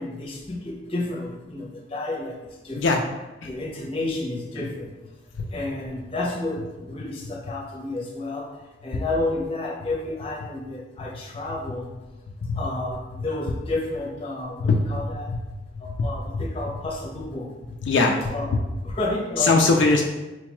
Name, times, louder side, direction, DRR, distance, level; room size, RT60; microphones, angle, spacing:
voice 1, 0.0-2.4 2.6-2.8 3.5-4.9 5.5-8.5 8.8-11.9 12.6-15.3 15.8-17.5 18.3-19.6, left 2 dB, 30° left, -3 dB, 0.7 m, -31 dB
voice 2, 15.7-16.4 17.8-18.6 19.4-20.0, left 3 dB, 75° left, 1 dB, 0.4 m, -22 dB
4.4 x 2.2 x 3.0 m, 1.1 s
head